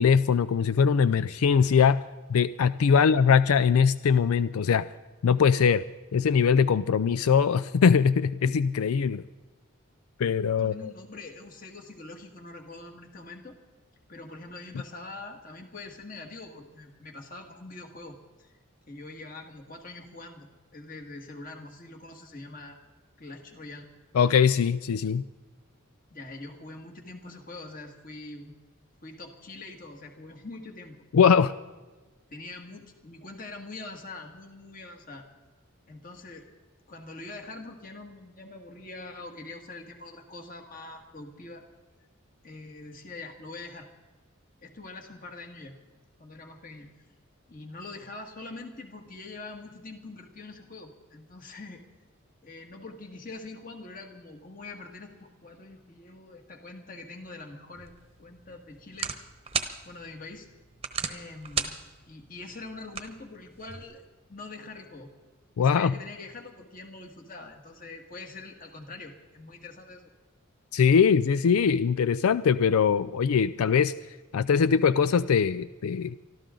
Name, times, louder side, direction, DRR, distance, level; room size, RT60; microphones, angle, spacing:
voice 1, 0.0-2.0 2.3-4.9 5.2-5.8 6.1-9.2 10.2-10.7 24.1-25.2 31.1-31.5 65.6-65.9 70.7-73.9 74.3-76.1, left 6 dB, 85° left, 15 dB, 0.4 m, -22 dB
voice 2, 10.6-13.6 14.1-18.6 18.9-22.8 23.2-23.9 26.1-28.5 29.0-31.0 32.3-35.3 35.9-36.5 36.9-41.6 42.4-43.9 44.6-45.7 46.2-46.9 47.5-51.8 52.4-57.9 58.2-59.1 59.8-60.5 61.1-61.7 62.1-65.1 65.6-70.1, left 3 dB, 40° left, 3 dB, 2.0 m, -44 dB
sound 1, 57.7-63.8, right 6 dB, 25° right, 1.0 m, -37 dB
24.5 x 13.5 x 3.8 m, 1.3 s
head